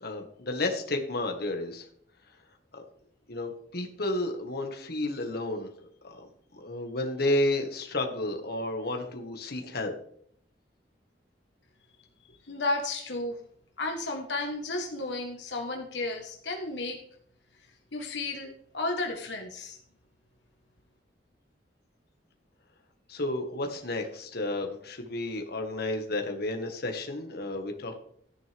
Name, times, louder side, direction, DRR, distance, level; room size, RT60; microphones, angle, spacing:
voice 1, 0.0-1.9 2.7-2.8 3.3-5.7 6.0-6.3 6.5-9.9 23.1-28.0, left 1 dB, 60° left, 4 dB, 1.7 m, -31 dB
voice 2, 12.5-13.4 13.8-17.0 17.9-19.8, left 2 dB, 80° left, 2 dB, 1.5 m, -33 dB
14.0 x 10.0 x 3.5 m, 0.66 s
head